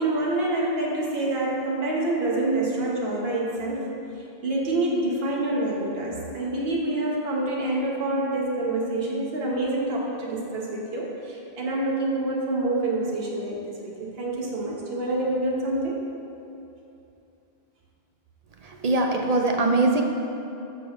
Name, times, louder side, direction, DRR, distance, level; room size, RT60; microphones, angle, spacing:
voice 1, 0.0-3.9 4.4-16.0, right 2 dB, 70° right, -3 dB, 1.3 m, -27 dB
voice 2, 18.6-20.0, right 2 dB, 50° right, 2 dB, 0.5 m, -22 dB
5.8 x 4.9 x 6.3 m, 2.8 s
omnidirectional pair, 1.0 m